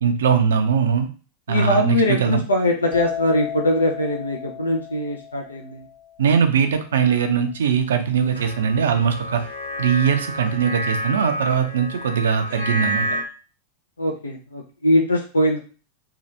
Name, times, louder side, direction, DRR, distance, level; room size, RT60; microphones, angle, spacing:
voice 1, 0.0-1.1 1.5-2.4 6.2-9.4 9.8-13.1, right 7 dB, 65° right, 7 dB, 0.4 m, -20 dB
voice 2, 1.5-5.8 14.0-15.6, left 1 dB, 75° left, 1 dB, 0.4 m, -21 dB
sound 1, 2.9-6.5, left 10 dB, 30° left, 1.0 m, -34 dB
sound 2, 8.3-13.2, equal, 90° right, 1.0 m, -29 dB
2.8 x 2.3 x 3.2 m, 0.37 s
figure-of-eight pair, 90°, 0 cm